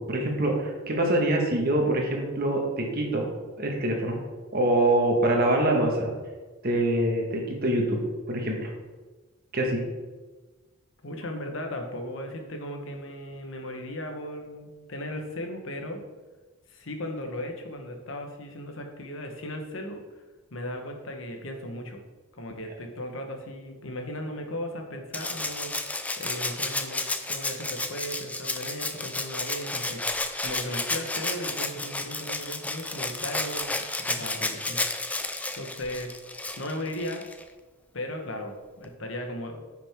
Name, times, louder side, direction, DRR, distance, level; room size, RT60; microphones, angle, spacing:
voice 1, 0.0-3.3 3.6-4.2 4.5-6.1 6.6-8.0 8.3-8.7 9.5-9.8, right 1 dB, 45° right, 1 dB, 1.6 m, -24 dB
voice 2, 11.0-16.0 16.7-20.0 20.5-22.0 22.3-25.9 26.2-33.7 34.1-34.8 35.5-36.1 36.6-37.2 37.9-39.6, left 1 dB, 60° left, 3 dB, 1.2 m, -36 dB
Rattle (instrument), 25.1-37.4 38.8-38.9, left 2 dB, 5° left, 0.4 m, -32 dB
9.3 x 6.1 x 3.6 m, 1.3 s
head